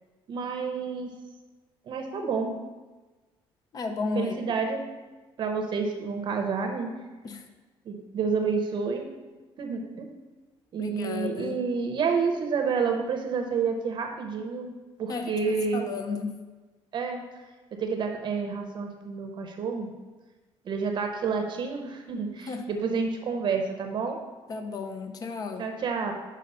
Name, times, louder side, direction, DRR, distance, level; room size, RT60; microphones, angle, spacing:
voice 1, 0.3-1.1 1.9-2.6 4.1-4.9 5.4-6.9 7.9-9.1 9.6-10.2 10.7-14.7 15.0-15.8 16.9-17.2 17.8-19.9 20.6-24.2 25.6-26.1, right 5 dB, 50° right, 4 dB, 0.7 m, -29 dB
voice 2, 3.7-4.5 7.2-7.4 10.8-11.6 15.1-16.3 22.5-22.7 24.5-25.7, left 4 dB, 35° left, 6 dB, 0.6 m, -33 dB
5.4 x 5.2 x 5.3 m, 1.2 s
cardioid pair, 140°, 10 cm